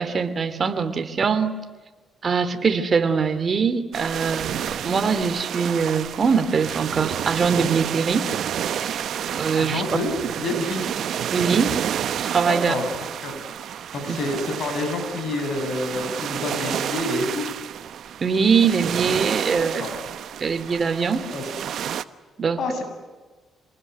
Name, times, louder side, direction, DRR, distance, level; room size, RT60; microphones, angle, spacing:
voice 1, 0.0-1.5 2.2-8.3 8.7-9.0 9.4-9.8 11.3-11.8 12.2-12.7 14.1-14.2 18.2-19.9 20.4-21.3 22.4-22.6, right 5 dB, 40° right, 9 dB, 2.8 m, -22 dB
sound 1, 3.9-22.0, right 9 dB, 70° right, 1.0 m, -30 dB
voice 2, 9.6-10.1 10.4-10.8 12.5-13.3 13.9-17.4 19.5-20.0 21.1-21.4 22.6-22.8, left 2 dB, 60° left, 5 dB, 7.6 m, -28 dB
27.5 x 20.0 x 9.4 m, 1.3 s
cardioid pair, 90°, 0 cm